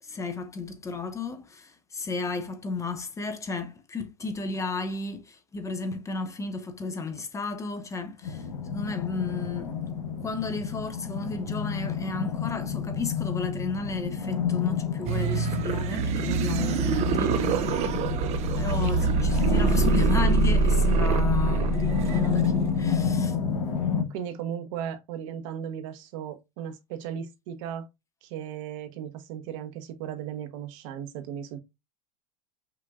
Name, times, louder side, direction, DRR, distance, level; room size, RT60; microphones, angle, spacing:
voice 1, 0.0-9.9 10.2-17.9 18.5-23.4, left 3 dB, 15° left, 0.5 m, -33 dB
sound 1, 8.2-24.0, left 7 dB, 80° left, 1.4 m, -29 dB
sound 2, 15.1-23.1, right 5 dB, 35° right, 0.4 m, -25 dB
voice 2, 24.1-27.9 28.2-31.6, right 9 dB, 60° right, 0.9 m, -36 dB
5.6 x 2.5 x 2.2 m
hypercardioid pair, 110°, 19 cm